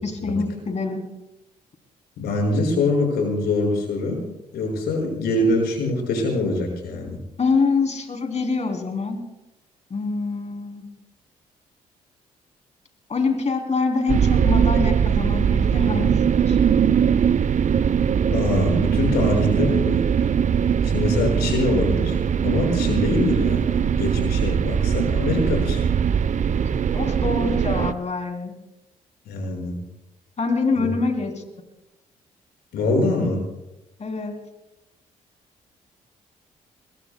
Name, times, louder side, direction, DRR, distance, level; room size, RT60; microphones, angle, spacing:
voice 1, 0.0-1.0 7.4-9.2 9.9-10.9 13.1-16.6 26.9-28.6 30.4-31.3 34.0-34.3, left 4 dB, 40° left, 4 dB, 3.5 m, -25 dB
voice 2, 2.2-4.2 4.5-7.2 18.3-20.3 20.8-22.2 22.4-25.9 29.3-29.8 30.8-30.9 32.7-33.4, left 2 dB, 70° left, 1 dB, 6.0 m, -24 dB
sound 1, 14.1-27.9, right 7 dB, 45° right, 0.7 m, -21 dB
26.0 x 22.0 x 2.3 m, 0.97 s
hypercardioid pair, 45°, 17 cm